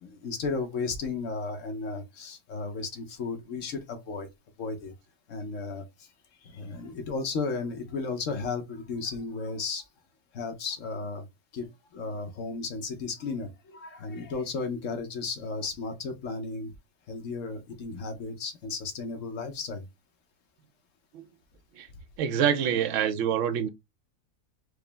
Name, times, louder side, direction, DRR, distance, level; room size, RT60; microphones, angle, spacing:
voice 1, 0.0-4.3 4.6-4.9 5.3-5.8 6.4-9.8 10.3-11.3 11.5-11.7 11.9-16.7 17.1-19.9, left 4 dB, 60° left, 1.0 m, -34 dB
voice 2, 22.2-23.7, right 8 dB, 65° right, 0.8 m, -26 dB
4.9 x 2.0 x 3.3 m
omnidirectional pair, 1.7 m